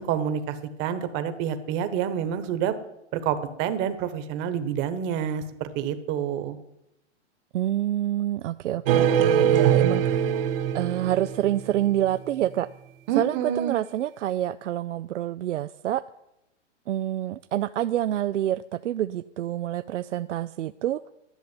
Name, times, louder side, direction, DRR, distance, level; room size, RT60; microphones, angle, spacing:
voice 1, 0.0-2.8 3.1-6.6 13.1-13.8, right 8 dB, 35° right, 10 dB, 1.2 m, -28 dB
voice 2, 7.5-12.7 13.1-16.0 16.9-21.1, right 12 dB, 85° right, 14 dB, 0.5 m, -27 dB
sound 1, 8.9-11.9, right 9 dB, 50° right, 0.7 m, -22 dB
11.0 x 6.8 x 9.5 m, 0.87 s
hypercardioid pair, 130°, 35 cm